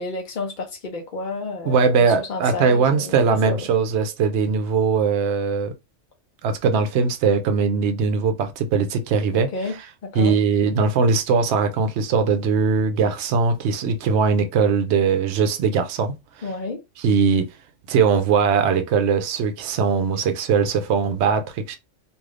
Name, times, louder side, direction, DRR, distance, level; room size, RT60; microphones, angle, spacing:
voice 1, 0.0-3.2 3.5-3.6 9.3-9.8 10.0-10.4 16.4-16.8, left 3 dB, 50° left, 0.7 m, -30 dB
voice 2, 1.7-5.7 6.4-9.5 10.1-16.2 17.0-17.5 17.9-21.8, right 5 dB, 70° right, 0.9 m, -20 dB
3.2 x 2.7 x 2.4 m
omnidirectional pair, 1.2 m